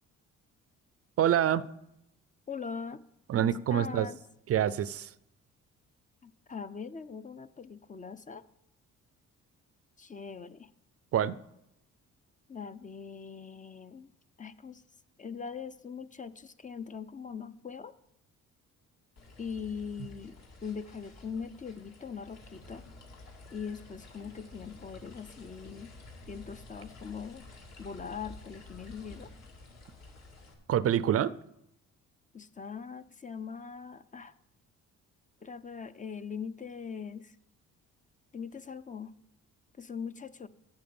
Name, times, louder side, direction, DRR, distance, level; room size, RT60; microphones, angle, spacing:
voice 1, 1.2-1.6 3.3-4.1 4.5-5.1 11.1-11.4 30.7-31.3, right 10 dB, 50° right, 18 dB, 0.5 m, -26 dB
voice 2, 2.5-3.0 3.4-4.2 6.2-8.4 10.0-10.7 12.5-14.1 14.4-14.8 15.2-17.9 19.4-20.4 20.6-22.8 23.5-25.9 26.3-27.4 27.8-29.3 32.3-34.3 35.4-37.4 38.3-39.1 39.8-40.5, left 6 dB, 25° left, 13 dB, 0.5 m, -41 dB
sound 1, 19.2-30.5, left 2 dB, 60° left, 2.5 m, -51 dB
8.9 x 7.6 x 7.0 m, 0.82 s
cardioid pair, 90°, 30 cm